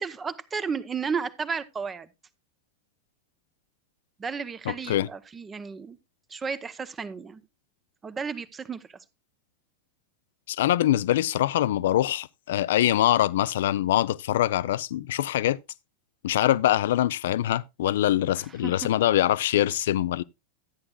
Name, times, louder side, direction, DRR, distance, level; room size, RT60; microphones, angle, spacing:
voice 1, 0.0-2.1 4.2-6.0 6.3-7.4 8.0-8.8 18.6-18.7, right 5 dB, 20° right, 0.7 m, -33 dB
voice 2, 4.7-5.1 10.5-15.6 16.2-20.2, left 13 dB, 55° left, 0.4 m, -24 dB
13.0 x 9.6 x 2.3 m
figure-of-eight pair, 90°, 0 cm